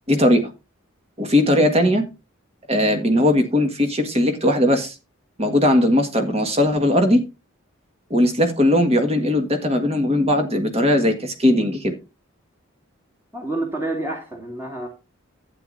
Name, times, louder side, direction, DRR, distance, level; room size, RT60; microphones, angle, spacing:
voice 1, 0.1-0.5 1.2-2.1 2.7-4.9 5.4-7.2 8.1-11.9, left 1 dB, 30° right, 7 dB, 1.6 m, -18 dB
voice 2, 13.3-14.9, right 2 dB, 10° right, 0 dB, 2.0 m, -28 dB
12.0 x 9.0 x 2.6 m, 0.27 s
head